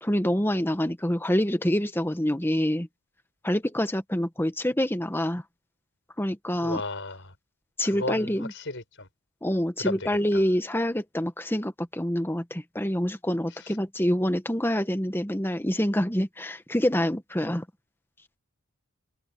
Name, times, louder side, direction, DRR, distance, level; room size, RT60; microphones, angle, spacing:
voice 1, 0.0-2.9 3.4-5.4 6.2-6.8 7.8-8.5 9.4-17.6, equal, 10° left, 1.2 m, -26 dB
voice 2, 6.6-7.3 7.8-9.1 9.8-10.4 13.5-13.8, left 2 dB, 55° left, 6.8 m, -35 dB
head